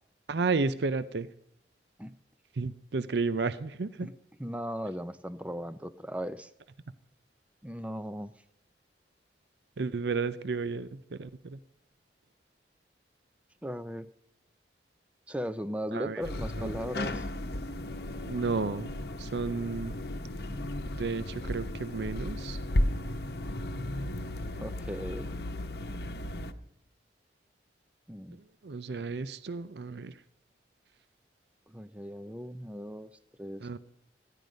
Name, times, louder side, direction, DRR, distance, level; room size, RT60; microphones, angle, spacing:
voice 1, 0.3-1.3 2.6-4.1 9.8-11.6 15.9-16.2 16.6-16.7 18.2-18.9 19.2-20.0 21.0-22.6 28.6-30.1 33.6-33.8, right 4 dB, 70° right, 15 dB, 0.5 m, -32 dB
voice 2, 4.4-6.5 7.6-8.3 13.6-14.1 15.3-17.3 24.6-25.3 28.1-28.4 31.7-33.1 33.4-33.8, equal, 5° right, 13 dB, 0.5 m, -37 dB
sound 1, 16.2-26.5, left 1 dB, 65° left, 0.9 m, -34 dB
15.0 x 11.0 x 5.1 m, 0.77 s
head